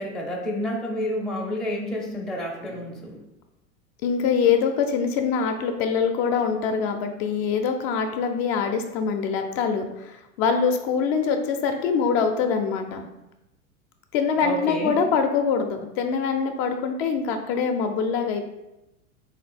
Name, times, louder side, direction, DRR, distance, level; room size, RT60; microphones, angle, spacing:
voice 1, 0.0-3.2 14.4-15.0, left 1 dB, ahead, -3 dB, 0.5 m, -29 dB
voice 2, 4.0-13.1 14.1-18.4, left 6 dB, 50° left, 5 dB, 0.5 m, -24 dB
3.3 x 2.7 x 4.2 m, 0.92 s
hypercardioid pair, 100°, 42 cm